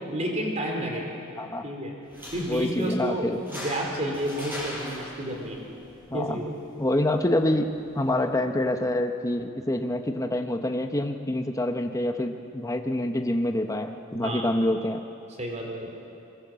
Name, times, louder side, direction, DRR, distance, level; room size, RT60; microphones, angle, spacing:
voice 1, 0.1-1.2 1.6-1.9 2.3-5.6 6.1-6.5 7.2-7.3 14.1-14.5 15.4-15.9, right 1 dB, 35° right, 1 dB, 4.1 m, -31 dB
sound 1, 2.0-9.0, left 1 dB, 10° right, 6.0 m, -42 dB
voice 2, 2.5-3.4 6.1-6.4 6.8-7.7 7.9-15.0, left 1 dB, 15° left, 5 dB, 0.9 m, -26 dB
23.0 x 22.0 x 7.6 m, 2.6 s
head